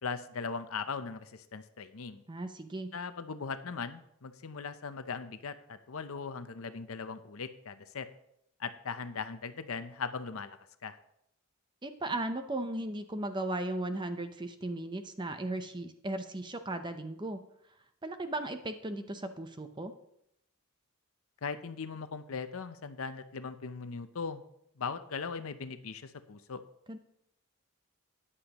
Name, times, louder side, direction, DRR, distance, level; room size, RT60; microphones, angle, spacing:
voice 1, 0.0-2.2 2.9-8.1 8.6-10.6 10.8-11.0 21.4-24.4 24.8-26.6, left 5 dB, 65° left, 11 dB, 0.7 m, -39 dB
voice 2, 2.3-2.9 11.8-17.4 18.0-19.9 26.9-27.0, right 2 dB, 20° right, 8 dB, 0.7 m, -36 dB
13.5 x 9.9 x 3.0 m, 0.76 s
head